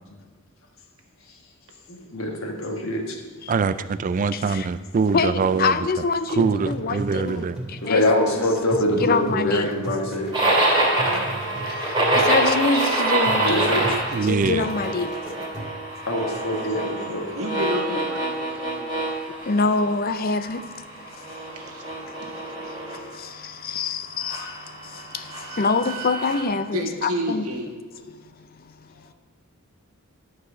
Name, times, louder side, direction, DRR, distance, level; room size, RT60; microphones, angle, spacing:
voice 1, 1.9-3.2 7.8-10.3 13.4-13.9 16.1-17.3 23.9-24.0, left 1 dB, 65° left, 1.4 m, -24 dB
voice 2, 3.5-5.9 6.3-7.6 14.1-14.7, right 5 dB, 35° right, 0.3 m, -23 dB
voice 3, 4.3-4.7 5.1-8.1 8.4-8.5 9.0-9.7 11.7-13.9 14.2-15.2 16.7-16.8 19.4-20.7 21.1-21.5 22.0-27.5 28.1-29.1, left 4 dB, 40° left, 0.5 m, -26 dB
sound 1, 6.4-15.9, right 1 dB, ahead, 2.7 m, -36 dB
sound 2, 10.3-20.1 20.4-23.0 24.2-26.4, right 2 dB, 20° right, 2.4 m, -26 dB
voice 4, 17.3-19.0 21.5-21.8 22.2-22.3 26.7-27.7, equal, 85° right, 1.6 m, -30 dB
11.5 x 4.8 x 6.8 m
head